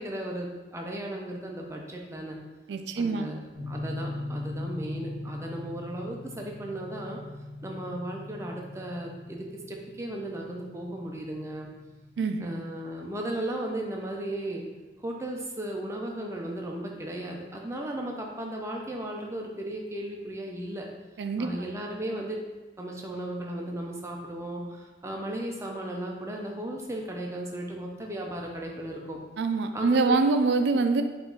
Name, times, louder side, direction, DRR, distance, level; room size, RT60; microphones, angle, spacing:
voice 1, 0.0-2.4 3.0-7.2 7.6-11.7 12.4-14.6 15.0-20.9 21.4-22.4 22.8-29.2 29.7-30.2, right 1 dB, 15° right, 0 dB, 0.5 m, -35 dB
voice 2, 2.7-3.3 12.2-12.5 21.2-21.5 29.4-31.0, right 3 dB, 75° right, 7 dB, 0.4 m, -25 dB
sound 1, 3.5-13.7, left 1 dB, 5° left, 1.3 m, -41 dB
5.0 x 2.5 x 3.7 m, 1.2 s
head